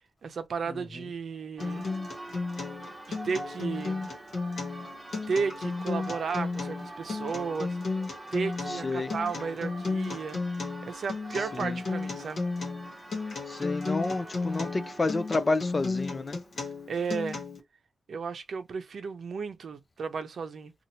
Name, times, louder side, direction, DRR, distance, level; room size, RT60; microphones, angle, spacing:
voice 1, 0.2-1.9 3.1-4.1 5.3-7.8 8.3-10.4 10.8-12.5 16.9-17.4 18.1-20.7, right 5 dB, 60° right, 0.6 m, -34 dB
Acoustic guitar, 1.6-17.6, left 3 dB, 65° left, 1.3 m, -34 dB
Church bell, 1.6-17.3, right 1 dB, 10° right, 0.7 m, -44 dB
voice 2, 8.7-9.1 11.5-11.7 13.5-16.4, left 3 dB, 25° left, 0.3 m, -29 dB
2.8 x 2.4 x 2.8 m
wide cardioid pair, 160°, 0 cm